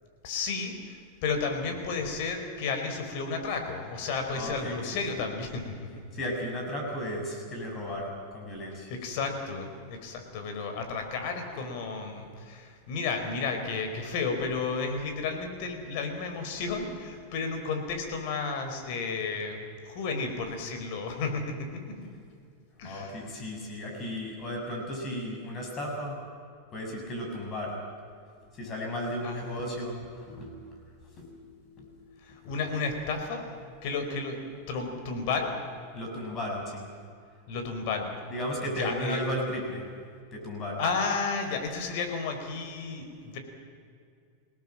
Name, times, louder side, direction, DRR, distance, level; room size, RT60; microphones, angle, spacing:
voice 1, 0.2-5.7 8.9-19.6 19.8-21.8 22.8-23.3 29.2-30.0 32.2-35.5 37.5-38.1 38.8-39.2 40.8-43.4, left 4 dB, 55° left, 5 dB, 4.9 m, -32 dB
voice 2, 4.3-4.8 6.1-8.9 22.8-26.2 26.7-27.8 28.5-31.9 32.3-32.6 35.9-36.9 38.3-39.9 40.3-40.8, equal, 30° left, 1 dB, 6.7 m, -35 dB
27.5 x 18.5 x 7.5 m, 2.3 s
supercardioid pair, 130°, 0 cm